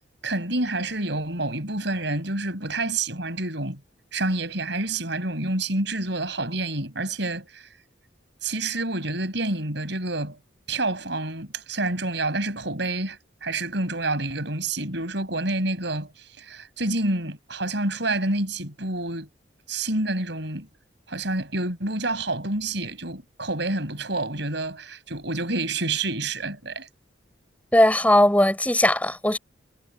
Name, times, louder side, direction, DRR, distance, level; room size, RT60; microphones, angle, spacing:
voice 1, 0.2-3.8 4.1-7.7 8.4-10.4 10.7-16.1 16.4-19.3 19.7-20.7 21.1-26.9, right 2 dB, 65° right, 7.9 m, -28 dB
voice 2, 27.7-29.4, left 1 dB, 10° left, 7.4 m, -18 dB
head